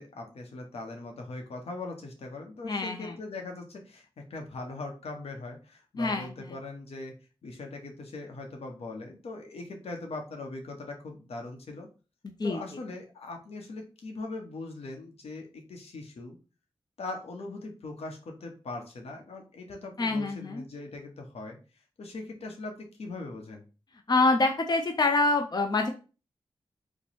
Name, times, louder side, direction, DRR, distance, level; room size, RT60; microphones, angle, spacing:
voice 1, 0.0-7.1 7.4-11.9 12.4-16.4 17.0-21.6 22.0-23.6, left 2 dB, 80° left, 2 dB, 0.9 m, -40 dB
voice 2, 2.6-3.1 6.0-6.5 12.4-12.6 20.0-20.6 24.1-25.9, left 3 dB, 40° left, 4 dB, 0.6 m, -26 dB
3.0 x 2.2 x 4.1 m, 0.34 s
cardioid pair, 50°, 10 cm